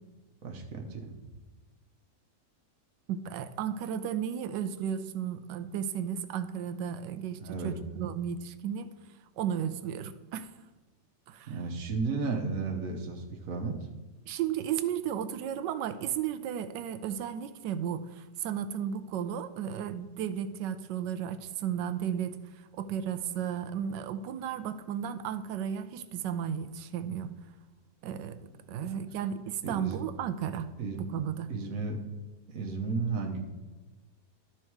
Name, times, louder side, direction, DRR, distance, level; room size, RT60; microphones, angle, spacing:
voice 1, 0.4-1.1 7.4-8.1 11.5-13.8 28.6-29.0 29.6-30.0 30.8-31.0 31.5-32.0 32.5-33.4, right 4 dB, 55° right, 2 dB, 1.4 m, -34 dB
voice 2, 3.1-8.9 9.4-10.5 11.3-11.5 14.3-22.4 22.8-27.3 28.0-28.4 28.7-31.5, right 9 dB, 85° right, 11 dB, 1.3 m, -34 dB
12.5 x 4.5 x 4.6 m, 1.2 s
omnidirectional pair, 1.8 m